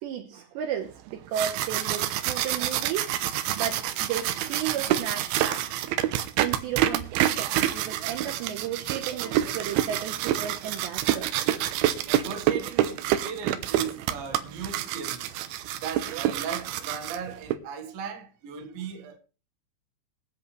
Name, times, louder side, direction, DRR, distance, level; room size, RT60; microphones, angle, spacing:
voice 1, 0.0-5.7 6.4-11.3, right 9 dB, 75° right, 3.1 m, -34 dB
sound 1, 1.1-17.5, right 12 dB, 90° right, 3.3 m, -27 dB
voice 2, 11.7-15.3 15.8-19.2, right 7 dB, 60° right, 3.1 m, -37 dB
23.5 x 8.1 x 3.3 m
omnidirectional pair, 5.4 m